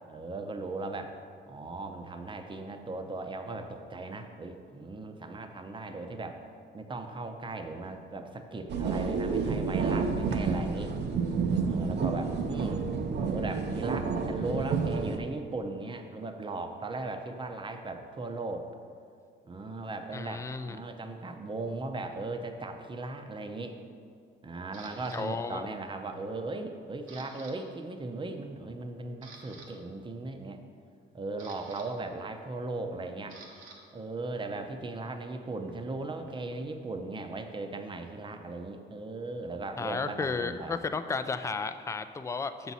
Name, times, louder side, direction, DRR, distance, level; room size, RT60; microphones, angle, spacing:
voice 1, 0.1-1.1 1.5-6.4 6.7-11.0 11.6-12.9 13.2-18.7 19.5-23.8 24.4-30.6 31.1-33.4 33.9-40.8, right 2 dB, 25° right, 6 dB, 0.6 m, -38 dB
sound 1, 8.7-15.2, right 5 dB, 60° right, 0.6 m, -30 dB
voice 2, 20.1-20.8 25.1-25.7 39.8-42.7, left 4 dB, 15° left, 10 dB, 0.3 m, -33 dB
Camera, 24.7-25.2 25.8-26.1 26.5-27.5 27.8-28.0 28.6-28.7 29.1-29.7 30.9-33.8 34.1-36.6, right 4 dB, 80° right, 1.1 m, -52 dB
6.8 x 6.1 x 4.1 m, 2.3 s
cardioid pair, 90°, 20 cm